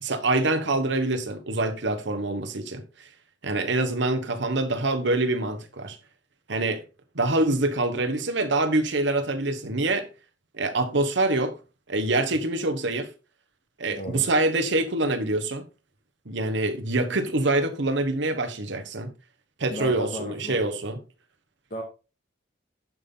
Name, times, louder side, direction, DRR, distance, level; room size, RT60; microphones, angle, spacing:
voice 1, 0.0-2.8 3.4-6.0 6.5-6.8 7.1-10.1 10.5-11.6 11.9-13.1 13.8-15.6 16.3-19.1 19.6-21.0, right 2 dB, 65° right, 1.2 m, -25 dB
voice 2, 13.9-14.2 19.7-20.6 21.7-21.8, left 1 dB, 45° left, 2.2 m, -34 dB
11.0 x 5.5 x 4.0 m
head